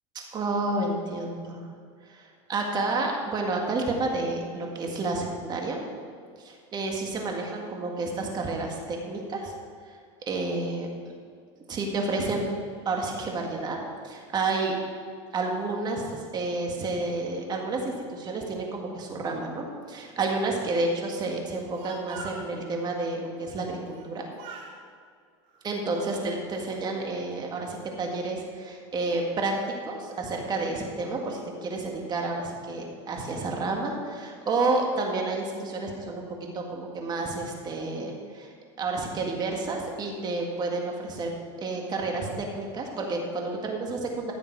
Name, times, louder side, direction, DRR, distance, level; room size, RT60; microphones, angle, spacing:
voice 1, 0.2-1.6 2.1-5.8 6.4-9.5 9.9-10.0 10.3-10.9 11.7-12.5 12.9-14.7 15.3-24.3 25.6-29.5 29.9-38.5 38.8-41.3 41.6-44.3, right 3 dB, 30° right, 1 dB, 1.9 m, -30 dB
Speech, 21.5-22.5 23.9-24.1 24.4-24.8 25.5-26.3, right 3 dB, 55° right, 2.8 m, -43 dB
14.0 x 7.1 x 4.8 m, 2.1 s
supercardioid pair, 130°, 15 cm